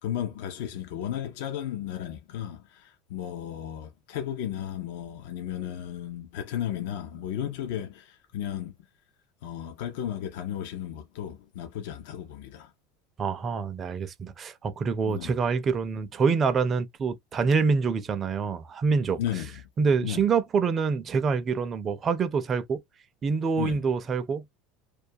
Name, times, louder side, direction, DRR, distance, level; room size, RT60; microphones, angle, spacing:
voice 1, 0.0-8.7 9.4-12.7 15.0-15.3 19.2-19.6 20.0-20.2 23.6-23.8, left 10 dB, 75° left, 0.5 m, -34 dB
voice 2, 13.2-19.2 19.8-22.8 23.2-24.4, right 5 dB, 30° right, 0.4 m, -26 dB
2.3 x 2.2 x 2.6 m
supercardioid pair, 130°, 0 cm